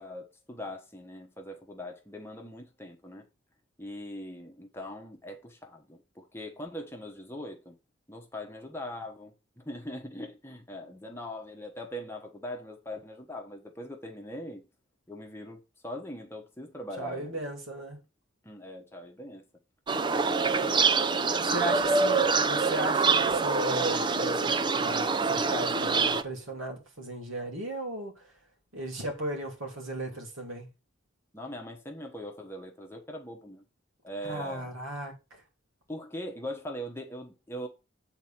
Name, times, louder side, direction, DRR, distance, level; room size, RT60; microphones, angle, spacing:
voice 1, 0.0-3.3 3.8-7.8 8.1-14.6 15.1-17.4 18.4-19.4 20.0-20.9 21.3-22.0 31.3-33.6 34.0-34.7 35.9-37.7, left 1 dB, 10° left, 1.1 m, -41 dB
voice 2, 17.0-18.0 21.1-28.1 28.7-30.7 34.2-35.4, right 1 dB, 75° right, 3.1 m, -36 dB
sound 1, 19.9-26.2, right 4 dB, 20° right, 0.4 m, -25 dB
8.2 x 4.1 x 5.9 m
head